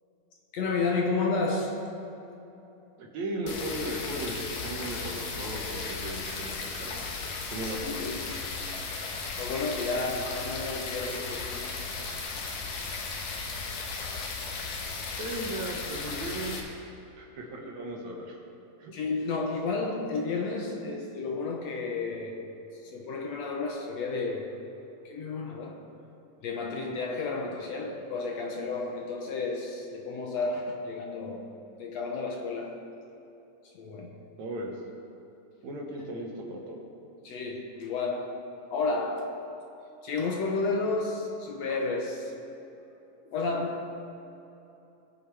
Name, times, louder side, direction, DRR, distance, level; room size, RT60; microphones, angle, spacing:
voice 1, 0.5-1.8 7.6-8.4 9.4-11.7 18.9-22.4 22.8-24.6 25.1-25.8 26.4-31.5 31.8-32.8 33.7-34.2 37.2-38.4 38.7-39.4 40.0-42.3 43.3-43.8, left 3 dB, 65° left, 1 dB, 1.9 m, -32 dB
voice 2, 3.0-7.2 7.5-8.0 15.2-16.7 17.2-18.4 18.8-18.9 26.8-27.0 34.4-34.7 35.6-36.8, right 1 dB, 65° right, 0 dB, 2.6 m, -36 dB
sound 1, 3.5-16.6, left 4 dB, 85° left, 2.9 m, -36 dB
20.5 x 8.6 x 3.5 m, 3.0 s
omnidirectional pair, 3.6 m